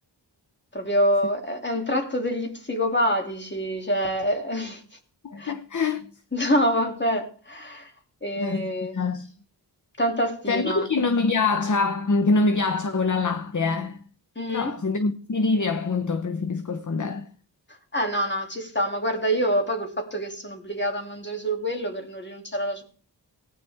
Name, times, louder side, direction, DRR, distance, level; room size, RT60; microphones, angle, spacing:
voice 1, 0.7-4.8 5.4-5.5 6.3-7.9 8.2-8.9 10.0-10.9 14.4-14.7 17.9-22.8, equal, 25° left, 2.8 m, -26 dB
voice 2, 5.2-6.0 8.4-9.3 10.5-14.0 14.5-17.3, left 3 dB, 45° left, 1.0 m, -25 dB
18.5 x 9.7 x 3.5 m
wide cardioid pair, 70°, 43 cm